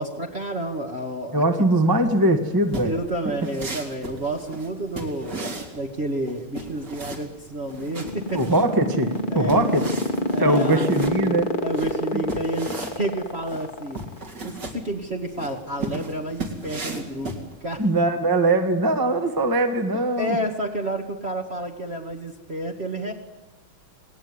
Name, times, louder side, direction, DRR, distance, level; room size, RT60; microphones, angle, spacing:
voice 1, 0.0-1.7 2.8-8.4 9.3-9.9 10.3-11.1 11.6-14.0 14.4-17.9 19.9-23.1, right 1 dB, 30° right, -1 dB, 2.0 m, -30 dB
voice 2, 1.3-2.9 8.3-9.8 10.4-11.5 12.1-12.2 17.8-20.4, right 1 dB, 10° right, 6 dB, 1.7 m, -21 dB
sound 1, 2.7-17.9, right 2 dB, 50° right, 3.9 m, -36 dB
sound 2, 7.6-14.2, left 1 dB, 25° left, 1.7 m, -25 dB
28.5 x 19.5 x 9.8 m, 1.1 s
omnidirectional pair, 2.3 m